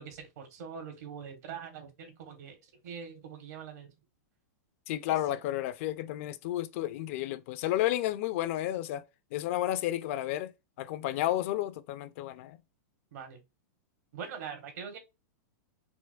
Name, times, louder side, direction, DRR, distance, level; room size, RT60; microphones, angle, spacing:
voice 1, 0.0-2.6 2.8-3.9 13.1-13.4 14.1-15.0, right 7 dB, 65° right, 1.2 m, -43 dB
voice 2, 4.9-9.0 9.3-10.5 10.8-12.6, left 14 dB, 45° left, 0.4 m, -32 dB
4.4 x 2.0 x 2.4 m
supercardioid pair, 150°, 10 cm